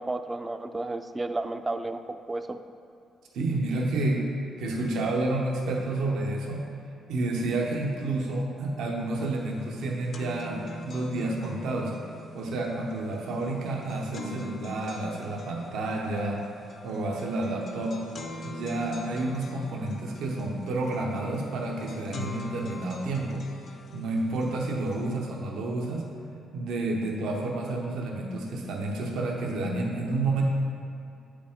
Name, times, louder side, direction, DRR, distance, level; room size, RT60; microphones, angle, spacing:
voice 1, 0.0-2.0 2.3-2.6, right 2 dB, 20° right, 9 dB, 0.4 m, -32 dB
voice 2, 3.3-4.3 4.6-6.6 7.1-11.9 12.3-16.4 16.8-18.0 18.4-23.4 23.9-26.0 26.5-30.4, right 2 dB, 80° right, 0 dB, 0.8 m, -30 dB
sound 1, 9.2-9.3 9.6-25.1, left 1 dB, 55° left, 0.6 m, -43 dB
8.1 x 5.0 x 3.6 m, 2.6 s
cardioid pair, 90°, 0 cm